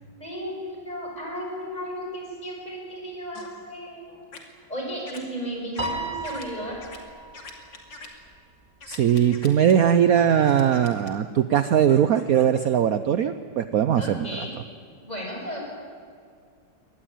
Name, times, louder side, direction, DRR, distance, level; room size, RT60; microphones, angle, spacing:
voice 1, 0.2-4.2 4.7-6.8 13.9-14.6 15.0-15.6, equal, 20° left, -1 dB, 6.7 m, -34 dB
sound 1, 3.3-3.5 4.3-4.4 5.1-5.2 5.7-5.9 6.2-6.5 6.8-7.0 7.3-8.1 8.8-9.7 10.5-11.1 11.9-12.6, left 4 dB, 75° left, 3.3 m, -43 dB
Piano, 5.8-8.3, right 2 dB, 25° right, 2.2 m, -35 dB
voice 2, 8.9-14.4, right 9 dB, 60° right, 11 dB, 1.1 m, -20 dB
23.5 x 19.5 x 9.1 m, 2.3 s
omnidirectional pair, 2.0 m